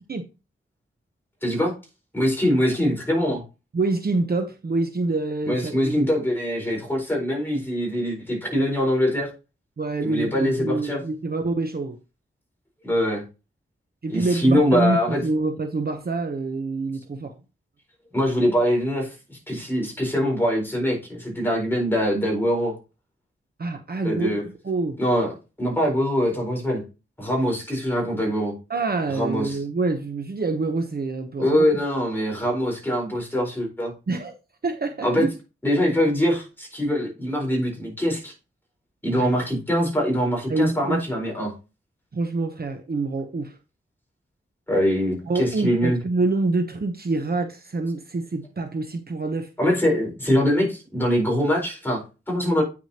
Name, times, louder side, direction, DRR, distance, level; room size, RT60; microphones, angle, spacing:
voice 1, 1.4-1.7 2.1-3.4 5.4-9.3 10.0-11.0 12.8-13.2 14.1-15.2 18.1-22.8 24.0-24.4 25.0-25.3 25.6-26.8 27.2-28.5 29.1-29.6 31.4-33.9 35.0-35.2 35.6-38.3 39.0-41.5 44.7-46.0 49.6-52.6, equal, 10° left, 4.4 m, -23 dB
voice 2, 3.7-6.0 9.8-12.0 14.0-17.4 23.6-25.0 28.7-31.6 34.1-34.3 34.6-35.3 39.1-39.3 40.5-41.0 42.1-43.6 45.3-49.5, right 3 dB, 45° right, 0.9 m, -26 dB
9.1 x 6.0 x 2.9 m
wide cardioid pair, 115°, 21 cm